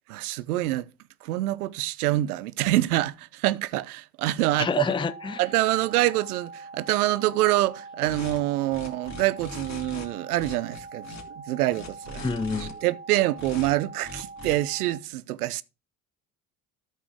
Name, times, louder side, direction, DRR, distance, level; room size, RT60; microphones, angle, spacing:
voice 1, 0.1-0.9 1.2-4.8 5.4-12.2 12.6-15.6, right 16 dB, 85° right, 0.6 m, -26 dB
voice 2, 4.6-5.4 12.2-12.7, left 4 dB, 10° left, 0.6 m, -28 dB
sound 1, 5.0-15.0, right 3 dB, 20° right, 1.1 m, -43 dB
sound 2, 8.0-8.4 8.7-10.1 10.4-11.2 11.7-12.7 13.4-13.7 14.0-14.6, left 2 dB, 40° left, 2.9 m, -40 dB
13.0 x 6.0 x 3.6 m
hypercardioid pair, 55°, 44 cm